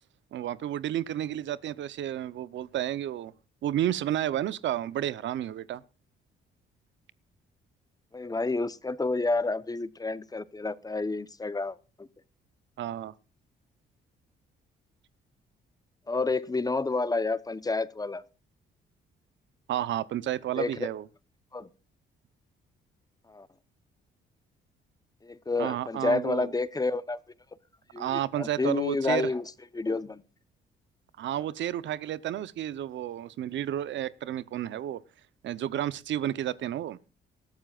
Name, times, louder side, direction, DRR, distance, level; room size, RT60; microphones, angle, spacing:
voice 1, 0.3-3.3 3.6-5.8 12.8-13.1 19.7-21.0 25.6-26.5 28.0-29.3 31.2-35.0 35.4-37.0, right 12 dB, 70° right, 0.8 m, -31 dB
voice 2, 8.1-12.1 16.1-18.2 20.6-20.9 21.5-21.7 23.3-23.5 25.2-27.2 27.9-29.4 29.7-30.2, left 3 dB, 20° left, 0.9 m, -29 dB
20.5 x 12.5 x 2.4 m
cardioid pair, 90°, 20 cm